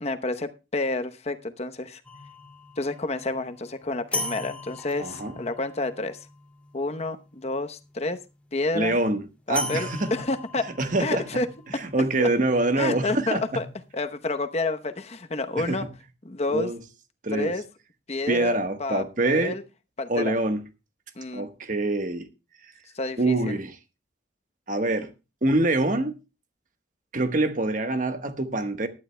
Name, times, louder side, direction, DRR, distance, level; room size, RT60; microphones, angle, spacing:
voice 1, 0.0-2.0 2.8-6.2 6.7-8.2 8.5-9.0 9.5-10.7 11.0-11.5 11.7-11.8 12.2-12.3 12.8-13.7 13.9-15.9 16.2-16.7 17.3-17.6 18.1-18.5 18.8-19.6 20.0-20.3 21.2-21.4 22.9-23.6, left 2 dB, 35° left, 0.9 m, -29 dB
sound 1, 2.0-8.2 9.5-13.6, left 2 dB, 5° left, 2.3 m, -39 dB
voice 2, 5.0-5.4 8.7-9.2 9.5-10.3 10.8-11.4 11.8-13.6 15.5-15.8 16.5-16.8 17.2-17.5 18.3-19.6 20.1-20.6 21.3-22.3 23.2-23.7 24.7-25.1 25.4-26.1 27.1-28.9, right 2 dB, 45° right, 1.3 m, -25 dB
19.0 x 11.5 x 2.2 m
head